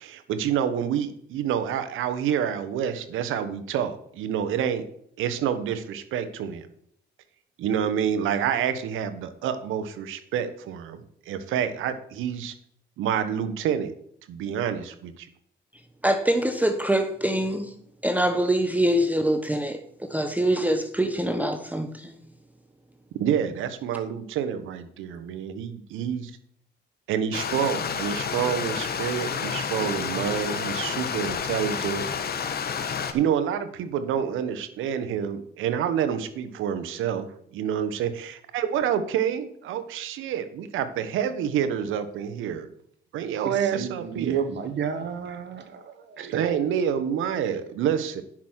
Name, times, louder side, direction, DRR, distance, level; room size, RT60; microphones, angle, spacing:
voice 1, 0.0-4.8 5.2-6.6 7.6-11.0 11.3-12.5 13.0-13.9 14.3-15.1 23.2-26.3 27.1-32.0 33.1-37.3 37.5-42.7 43.1-44.3 46.3-48.2, right 8 dB, 90° right, 11 dB, 1.2 m, -28 dB
voice 2, 16.0-17.7 18.0-22.1, right 1 dB, 10° right, 7 dB, 1.0 m, -24 dB
Stream, 27.3-33.1, left 6 dB, 50° left, 1.3 m, -30 dB
voice 3, 43.2-46.8, right 7 dB, 65° right, 9 dB, 1.4 m, -32 dB
10.0 x 6.2 x 6.2 m, 0.67 s
cardioid pair, 90°, 20 cm